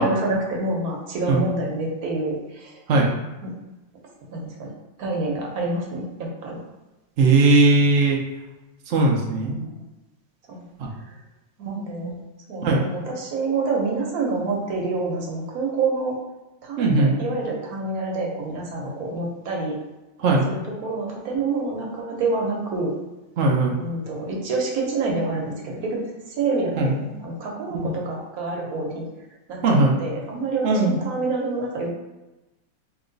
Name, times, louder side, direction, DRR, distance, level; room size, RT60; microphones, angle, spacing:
voice 1, 0.0-2.8 3.4-3.5 4.3-4.7 5.0-6.6 9.4-9.8 10.5-10.6 11.0-11.2 11.6-12.1 12.5-16.2 16.6-19.7 20.5-22.9 23.8-29.0 29.5-31.9, right 3 dB, 60° right, -1 dB, 1.1 m, -27 dB
voice 2, 7.2-8.2 8.9-9.5 10.8-10.9 11.7-12.1 12.6-12.8 16.8-17.1 20.2-20.4 23.4-23.8 26.8-27.0 27.7-27.9 29.6-29.9 30.6-30.9, right 3 dB, 80° right, -1 dB, 0.6 m, -19 dB
3.1 x 2.9 x 3.8 m, 1.0 s
omnidirectional pair, 2.0 m